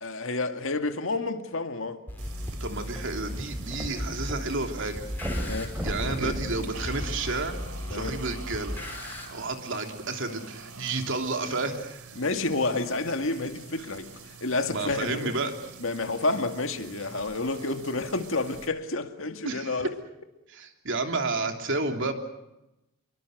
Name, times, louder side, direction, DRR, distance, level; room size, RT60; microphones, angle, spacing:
voice 1, 0.0-2.0 5.4-5.8 6.0-6.4 7.9-8.2 12.2-14.1 14.4-15.4 15.8-19.9, left 3 dB, 60° left, 2.1 m, -30 dB
sound 1, 2.1-9.3, equal, 10° left, 5.1 m, -36 dB
sound 2, 2.2-18.7, right 5 dB, 85° right, 3.6 m, -46 dB
voice 2, 2.6-5.0 5.8-7.5 7.9-8.8 9.3-12.1 14.7-15.5 19.4-19.9 20.5-22.1, right 3 dB, 60° right, 3.2 m, -31 dB
sound 3, 3.0-4.4 4.7-4.8 5.2-7.7 8.4-8.5, equal, 10° right, 4.9 m, -35 dB
27.5 x 23.5 x 6.6 m
head